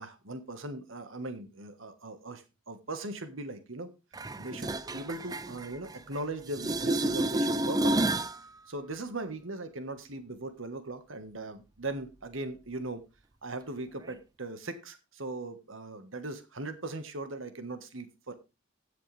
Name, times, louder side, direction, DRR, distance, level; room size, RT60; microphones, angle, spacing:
voice 1, 0.0-3.9 4.4-8.1 8.7-13.0 13.4-18.4, right 2 dB, 80° right, 9 dB, 1.5 m, -39 dB
sound 1, 4.1-6.2 6.5-8.4 14.1-14.2, right 1 dB, 20° right, 0.4 m, -30 dB
16.0 x 6.7 x 3.4 m, 0.27 s
head